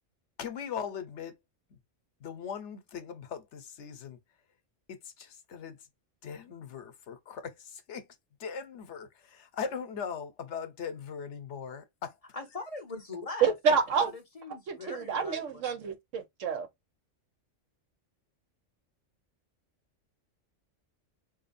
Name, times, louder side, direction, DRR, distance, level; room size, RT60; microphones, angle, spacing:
voice 1, 0.4-1.3 2.2-4.2 4.9-5.8 6.2-8.0 8.4-12.1, left 6 dB, 70° left, 1.0 m, -39 dB
voice 2, 12.3-13.5 14.1-15.8, left 3 dB, 35° left, 0.7 m, -41 dB
voice 3, 13.4-14.1 14.7-16.7, right 6 dB, 85° right, 1.3 m, -28 dB
4.7 x 2.7 x 2.5 m
omnidirectional pair, 1.3 m